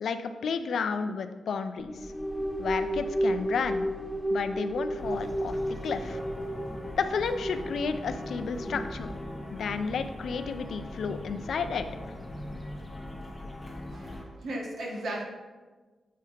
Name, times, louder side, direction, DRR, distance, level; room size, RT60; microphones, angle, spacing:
voice 1, 0.0-2.1 2.6-3.9 4.3-6.2 7.0-9.1 9.5-11.9, left 5 dB, 75° left, 9 dB, 0.4 m, -32 dB
sound 1, 1.8-9.4, right 1 dB, ahead, 0.7 m, -33 dB
sound 2, 5.0-14.2, left 1 dB, 15° left, 1.0 m, -40 dB
voice 2, 13.9-15.2, right 1 dB, 75° right, -1 dB, 1.4 m, -36 dB
7.4 x 2.8 x 4.9 m, 1.3 s
cardioid pair, 80°, 0 cm